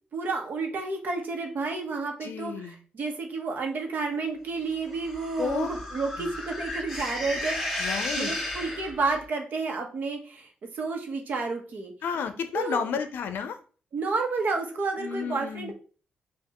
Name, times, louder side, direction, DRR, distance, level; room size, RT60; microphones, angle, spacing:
voice 1, 0.1-7.6 8.2-10.5 10.7-11.9 12.5-12.9 13.9-15.7, right 3 dB, 60° right, 3 dB, 1.1 m, -30 dB
voice 2, 2.2-2.8 5.4-5.7 6.2-6.3 7.8-8.3 12.0-13.6 15.0-15.7, left 6 dB, 85° left, 9 dB, 0.6 m, -31 dB
sound 1, 4.9-9.2, left 1 dB, 5° left, 2.1 m, -33 dB
5.6 x 2.5 x 2.9 m, 0.39 s
cardioid pair, 95°, 3 cm